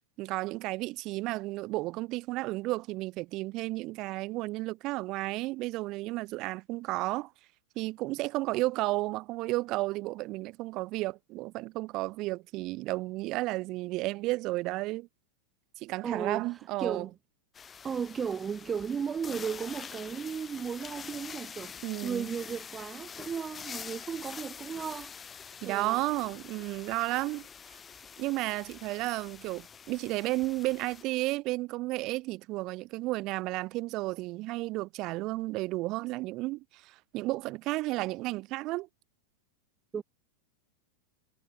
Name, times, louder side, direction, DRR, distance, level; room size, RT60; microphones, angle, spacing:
voice 1, 0.2-7.3 7.8-15.1 15.8-17.1 21.8-22.3 25.6-27.5 28.2-38.9, right 20 dB, 40° right, 0.9 m, -33 dB
voice 2, 16.0-17.1 17.8-21.8 22.0-25.1 25.6-26.0 39.9-40.0, right 6 dB, 20° right, 0.5 m, -35 dB
sound 1, 17.5-31.0, left 7 dB, 20° left, 0.7 m, -46 dB
figure-of-eight pair, 90°, 0 cm